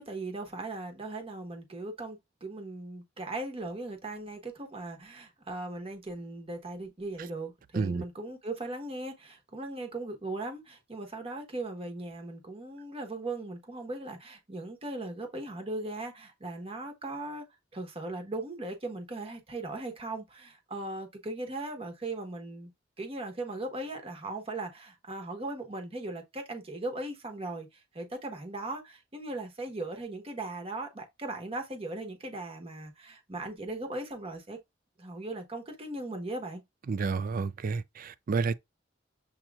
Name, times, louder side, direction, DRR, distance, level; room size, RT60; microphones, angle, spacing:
voice 1, 0.0-17.4 17.7-22.7 23.0-34.6 35.0-36.6, right 2 dB, 30° right, 1.1 m, -38 dB
voice 2, 36.9-38.5, right 4 dB, 45° right, 0.4 m, -30 dB
7.2 x 2.9 x 2.3 m
head